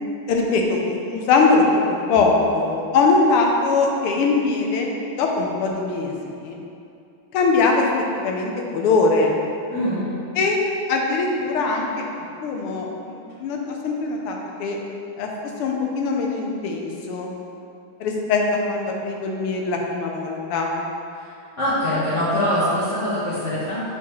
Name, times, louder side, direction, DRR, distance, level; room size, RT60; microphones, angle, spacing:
voice 1, 0.3-1.8 2.1-6.1 6.4-6.6 7.3-7.9 8.2-9.4 10.4-10.6 10.9-12.1 12.4-14.8 15.2-15.3 15.6-17.3 18.0-20.7, left 3 dB, 85° left, 1 dB, 1.6 m, -21 dB
voice 2, 9.7-10.1 21.2-21.3 21.6-23.9, left 1 dB, 40° left, -13 dB, 1.5 m, -23 dB
7.1 x 4.7 x 3.1 m, 2.6 s
omnidirectional pair, 2.4 m